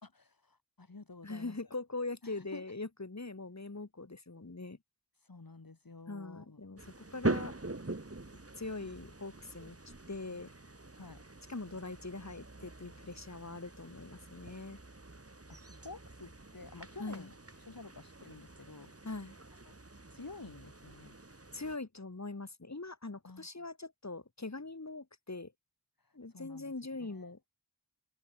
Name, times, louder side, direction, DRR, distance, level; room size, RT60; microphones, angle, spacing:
voice 1, 0.0-1.6 2.2-2.6 5.2-6.6 10.9-11.2 15.5-17.3 17.6-18.9 20.1-21.2 23.2-23.5 26.0-26.7 27.0-27.3, left 3 dB, 65° left, 5.1 m, -51 dB
voice 2, 1.2-4.8 6.1-7.5 8.6-9.8 10.1-10.5 11.5-14.8 17.0-17.3 19.0-19.3 21.5-25.5 26.1-27.4, left 3 dB, 45° left, 3.2 m, -42 dB
sound 1, 6.8-21.8, right 2 dB, 40° right, 3.8 m, -43 dB
wide cardioid pair, 40°, 37 cm